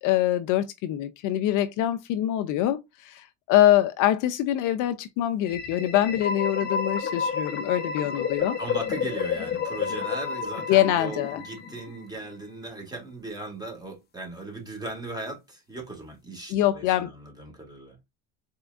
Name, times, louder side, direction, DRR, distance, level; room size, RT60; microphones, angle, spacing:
voice 1, 0.0-8.6 10.7-11.4 16.5-17.1, left 13 dB, 55° left, 0.5 m, -24 dB
sound 1, 5.4-12.2, left 6 dB, 25° left, 0.9 m, -30 dB
voice 2, 8.6-18.0, right 2 dB, 10° right, 1.9 m, -38 dB
4.3 x 3.7 x 2.5 m
supercardioid pair, 115°, 38 cm